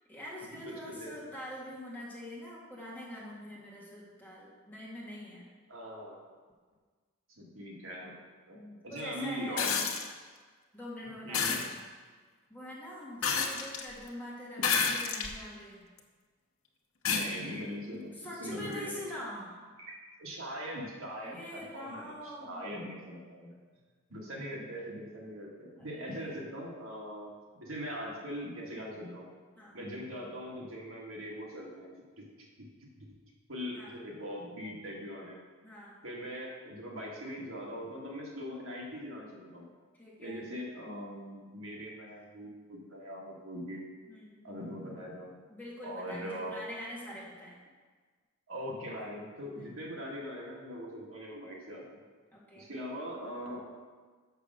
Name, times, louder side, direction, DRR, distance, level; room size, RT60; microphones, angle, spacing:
voice 1, 0.1-5.5 8.5-9.8 10.7-11.9 12.5-15.9 18.1-19.6 21.2-22.7 25.6-26.3 29.6-29.8 33.7-34.0 35.6-35.9 39.9-40.5 44.1-44.5 45.5-47.6 49.6-49.8 52.3-52.8, equal, 10° left, -6 dB, 2.1 m, -44 dB
voice 2, 0.6-1.3 5.7-6.2 7.4-8.1 8.5-8.6 8.8-9.7 11.2-11.6 17.1-19.0 19.8-23.6 24.1-27.3 27.6-29.3 29.7-32.2 33.0-33.1 33.5-35.4 36.0-39.7 40.2-43.8 44.4-45.3 45.8-46.6 48.5-52.0 52.6-53.6, equal, 70° right, -3 dB, 1.8 m, -41 dB
sound 1, 9.6-10.1 11.3-11.7 13.2-13.8 14.6-15.3 16.0-16.1 17.1-17.3 18.7-18.8, left 6 dB, 75° left, 1.0 m, -29 dB
6.7 x 6.3 x 6.2 m, 1.5 s
head